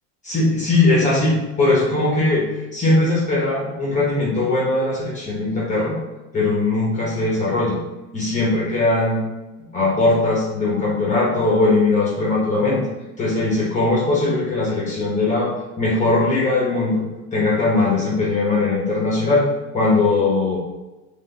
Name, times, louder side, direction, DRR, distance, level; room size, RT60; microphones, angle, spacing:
voice 1, 0.2-2.5 2.7-6.0 6.3-7.8 8.1-9.2 9.7-12.8 13.2-17.0 17.3-19.5 19.7-20.6, left 2 dB, 20° left, -5 dB, 0.9 m, -20 dB
3.9 x 3.3 x 3.3 m, 1.1 s
cardioid pair, 145°, 34 cm